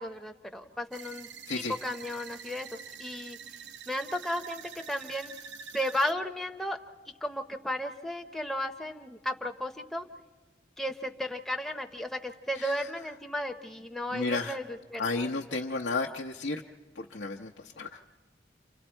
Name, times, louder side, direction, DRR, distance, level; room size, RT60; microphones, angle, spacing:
voice 1, 0.0-1.3 1.8-3.4 3.9-5.3 5.7-6.8 7.2-10.1 10.8-14.6 14.9-15.1, equal, ahead, 3 dB, 0.6 m, -34 dB
sound 1, 0.9-6.1, right 6 dB, 80° right, 0.7 m, -46 dB
voice 2, 12.5-12.9 14.1-14.6 15.0-16.6 16.9-18.0, left 3 dB, 85° left, 0 dB, 0.8 m, -33 dB
30.0 x 26.0 x 4.4 m, 1.3 s
head